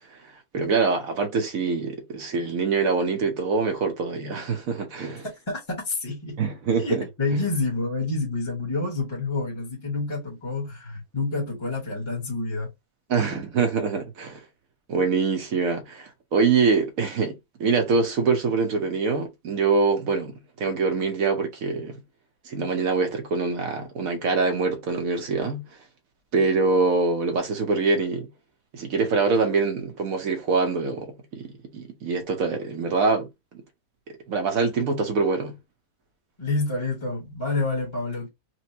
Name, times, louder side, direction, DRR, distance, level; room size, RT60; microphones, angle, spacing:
voice 1, 0.5-5.2 6.4-7.0 7.3-7.4 13.1-14.4 14.9-20.3 20.6-22.0 22.5-25.6 26.3-28.3 28.7-33.3 34.3-35.6, right 4 dB, 60° right, 1.3 m, -24 dB
voice 2, 5.5-6.4 6.8-12.7 36.4-38.3, left 3 dB, 20° left, 1.0 m, -28 dB
4.4 x 2.1 x 2.7 m
omnidirectional pair, 1.7 m